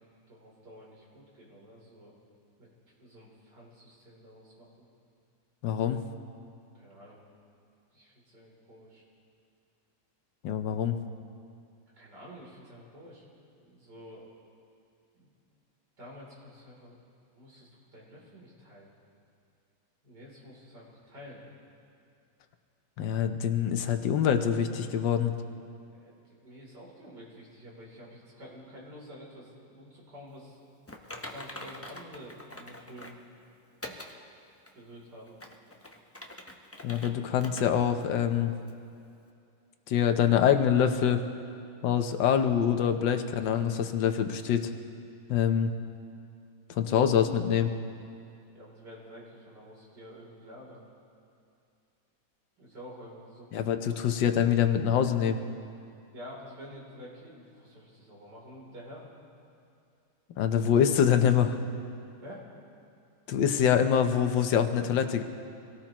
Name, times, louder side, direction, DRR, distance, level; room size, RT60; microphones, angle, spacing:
voice 1, 0.0-2.1 2.6-2.7 3.0-4.9 6.7-7.2 7.9-9.0 11.9-13.2 13.6-14.3 15.2-15.3 16.0-17.0 17.3-18.9 20.0-21.4 25.9-30.6 31.2-33.2 34.7-35.3 48.5-50.8 52.6-54.0 56.1-59.0 62.2-62.4, equal, 65° right, -4 dB, 3.9 m, -49 dB
voice 2, 5.6-6.0 10.4-11.0 23.0-25.3 36.8-38.5 39.9-41.2 41.8-44.7 45.3-45.7 46.7-47.7 53.5-55.4 60.4-61.6 63.3-65.2, left 8 dB, 85° left, 7 dB, 1.5 m, -25 dB
Typing, 30.9-33.2 33.8-34.1 34.7-34.8 35.3-37.1 37.4-37.6 38.0-38.1 38.7-38.8, left 1 dB, 20° left, 0.3 m, -44 dB
26.0 x 18.0 x 3.0 m, 2.5 s
omnidirectional pair, 1.9 m